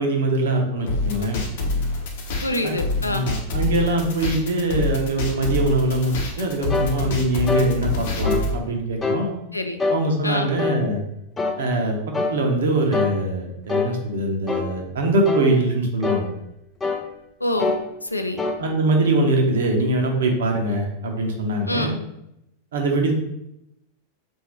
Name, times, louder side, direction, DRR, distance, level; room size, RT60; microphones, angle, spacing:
voice 1, 0.0-1.4 2.6-2.7 3.1-9.3 9.9-11.0 11.6-16.3 18.6-21.9 22.7-23.1, right 2 dB, 60° right, 2 dB, 0.9 m, -22 dB
sound 1, 0.9-8.5, left 2 dB, 55° left, 0.9 m, -26 dB
voice 2, 2.4-3.3 9.5-9.8 10.2-10.5 17.4-17.8 18.0-18.4 21.7-22.0, left 1 dB, 85° left, 6 dB, 0.5 m, -26 dB
sound 2, 6.7-6.9 7.5-7.7 8.2-8.5 9.0-9.3 9.8-10.0 10.6-10.8 11.4-11.6 12.1-12.4 12.9-13.2 13.7-13.9 14.5-14.7 15.3-15.5 16.0-16.3 16.8-17.1 17.6-17.8 18.4-18.6, left 4 dB, 15° left, 0.6 m, -24 dB
3.9 x 2.7 x 4.5 m, 0.84 s
figure-of-eight pair, 90°, 0 cm